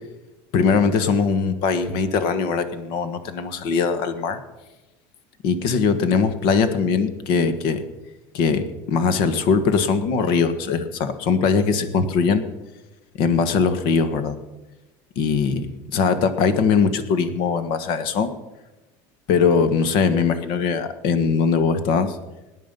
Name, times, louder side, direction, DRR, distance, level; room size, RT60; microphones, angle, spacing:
voice 1, 0.5-4.4 5.4-7.8 8.3-12.4 13.2-14.4 15.1-18.3 19.3-22.2, left 5 dB, 60° left, 11 dB, 1.5 m, -21 dB
19.0 x 9.7 x 5.4 m, 1.1 s
cardioid pair, 155°, 9 cm